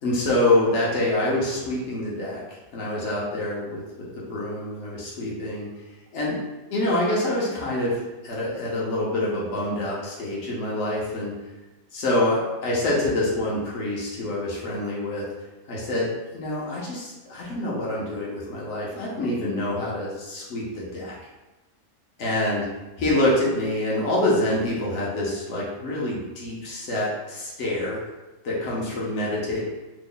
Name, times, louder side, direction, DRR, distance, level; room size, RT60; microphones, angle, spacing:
voice 1, 0.0-2.4 2.7-3.8 4.3-5.7 6.1-6.4 6.7-11.3 11.9-15.2 15.7-16.1 16.3-21.1 22.2-22.6 23.0-28.0 28.4-29.6, left 1 dB, 65° left, -6 dB, 1.1 m, -26 dB
3.0 x 2.1 x 3.7 m, 1.1 s
omnidirectional pair, 1.3 m